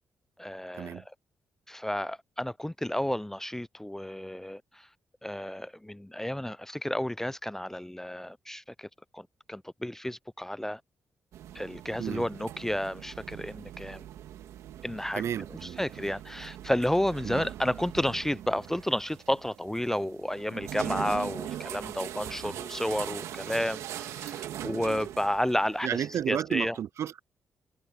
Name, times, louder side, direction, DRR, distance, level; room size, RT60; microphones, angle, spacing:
voice 1, 0.4-1.1 1.7-4.9 5.2-8.9 9.1-10.8 11.5-14.1 14.8-15.2 15.6-26.8, left 1 dB, 10° left, 0.4 m, -31 dB
sound 1, 11.3-26.3, right 11 dB, 85° right, 2.1 m, -41 dB
voice 2, 15.2-16.1 17.2-17.4 22.4-22.6 25.8-27.2, right 9 dB, 70° right, 0.4 m, -33 dB
supercardioid pair, 55°, 5 cm